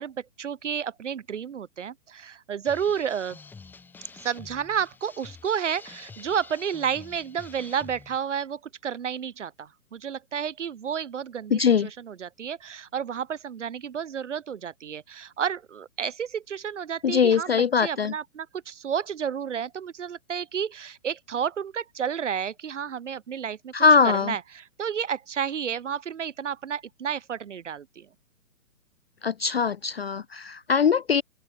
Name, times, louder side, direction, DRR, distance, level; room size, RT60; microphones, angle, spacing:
voice 1, 0.0-3.4 4.2-23.7 24.0-28.1, right 7 dB, 55° right, 3.4 m, -31 dB
sound 1, 2.6-8.2, left 4 dB, 5° left, 4.8 m, -47 dB
voice 2, 11.5-11.9 17.0-18.1 23.7-24.3 29.2-31.2, left 6 dB, 45° left, 0.6 m, -21 dB
open air
hypercardioid pair, 175°, 44 cm